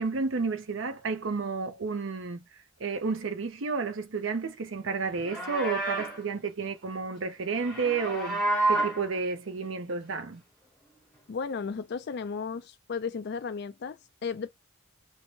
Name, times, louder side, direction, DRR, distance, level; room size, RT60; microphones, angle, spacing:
voice 1, 0.0-2.4 2.8-8.4 8.7-10.4, right 4 dB, 65° right, 0.6 m, -31 dB
Livestock farm animals working animals, 5.1-6.2 7.5-9.0, right 2 dB, 5° left, 1.0 m, -29 dB
voice 2, 11.3-14.5, left 5 dB, 50° left, 0.4 m, -34 dB
2.6 x 2.2 x 3.0 m
head